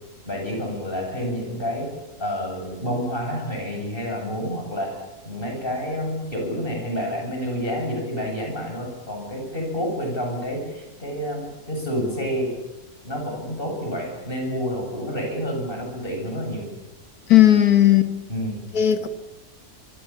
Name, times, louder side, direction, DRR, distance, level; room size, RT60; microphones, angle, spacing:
voice 1, 0.2-1.9 2.2-5.0 5.2-12.5 13.0-16.7 18.3-18.6, equal, 35° left, 1 dB, 8.1 m, -29 dB
voice 2, 17.3-18.1 18.7-19.1, left 12 dB, 75° left, 9 dB, 2.1 m, -15 dB
26.0 x 24.0 x 7.3 m, 0.97 s
omnidirectional pair, 1.6 m